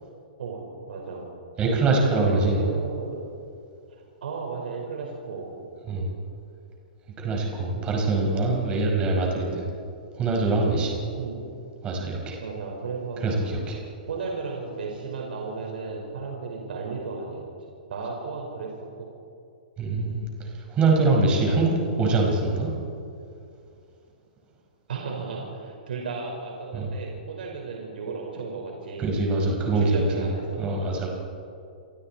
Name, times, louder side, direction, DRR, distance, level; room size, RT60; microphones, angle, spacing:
voice 1, 0.4-1.3 1.6-3.2 4.2-5.5 11.2-11.4 12.4-13.4 14.1-17.4 17.9-19.1 24.9-29.0 29.7-30.6, right 4 dB, 80° right, -1 dB, 5.2 m, -34 dB
voice 2, 1.6-2.6 5.9-6.1 7.2-9.7 10.2-11.0 11.8-12.4 13.2-13.8 19.8-20.3 20.7-22.7 26.7-26.9 29.0-30.3 30.6-31.1, right 3 dB, 20° right, -1 dB, 5.2 m, -23 dB
28.5 x 23.5 x 4.5 m, 2.5 s
hypercardioid pair, 155°, 5 cm